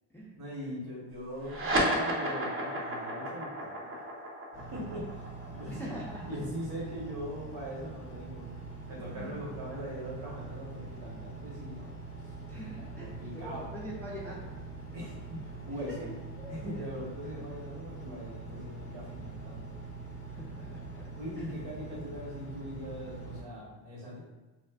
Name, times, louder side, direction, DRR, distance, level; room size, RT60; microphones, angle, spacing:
voice 1, 0.3-4.0 4.7-5.9 6.3-8.5 8.9-11.9 13.0-13.7 14.9-16.1 16.5-19.7 21.2-24.2, equal, 65° right, -4 dB, 1.1 m, -41 dB
sound 1, 1.4-8.3, right 1 dB, 30° right, 0.7 m, -33 dB
Engine, 4.5-23.4, right 3 dB, 30° left, 0.7 m, -44 dB
voice 2, 5.7-6.2 9.1-9.3 12.5-14.5 15.8-16.9 17.3-17.5 20.3-21.1 21.4-21.5, equal, 5° left, -5 dB, 0.4 m, -43 dB
2.4 x 2.4 x 2.3 m, 1.1 s
cardioid pair, 90°, 44 cm